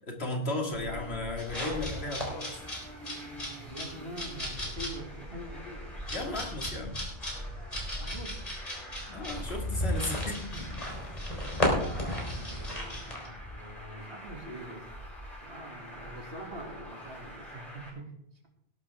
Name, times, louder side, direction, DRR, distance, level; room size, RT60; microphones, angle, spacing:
voice 1, 0.0-2.5 6.1-7.0 9.1-10.7, left 2 dB, 75° left, 2 dB, 2.6 m, -35 dB
Traffic noise roadway noise, 0.7-17.9, equal, ahead, 6.8 m, -43 dB
sound 1, 1.4-13.3, left 1 dB, 35° left, 4.0 m, -35 dB
voice 2, 3.3-6.5 8.0-8.5 10.5-10.7 11.7-14.9 15.4-18.1, right 1 dB, 65° right, 0 dB, 2.8 m, -44 dB
18.5 x 11.5 x 3.6 m, 0.73 s
omnidirectional pair, 1.1 m